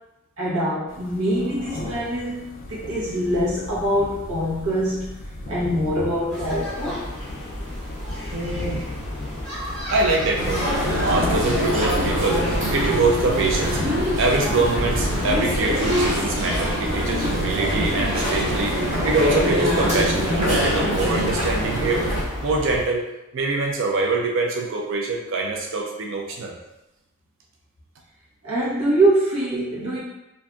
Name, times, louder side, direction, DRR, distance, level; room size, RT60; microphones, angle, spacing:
voice 1, 0.4-5.2 5.5-7.0 28.4-30.0, right 1 dB, 85° right, -8 dB, 1.0 m, -24 dB
sound 1, 0.9-16.2, left 2 dB, 40° left, 0.4 m, -36 dB
sound 2, 6.3-22.8, left 1 dB, 5° left, 0.9 m, -32 dB
voice 2, 8.3-8.9 9.9-10.7 10.9-13.8 14.2-22.0 22.4-23.0 23.3-26.5, right 3 dB, 55° right, 0 dB, 0.4 m, -24 dB
sound 3, 10.4-22.2, equal, 30° right, 1.1 m, -24 dB
3.7 x 2.6 x 2.3 m, 0.94 s
head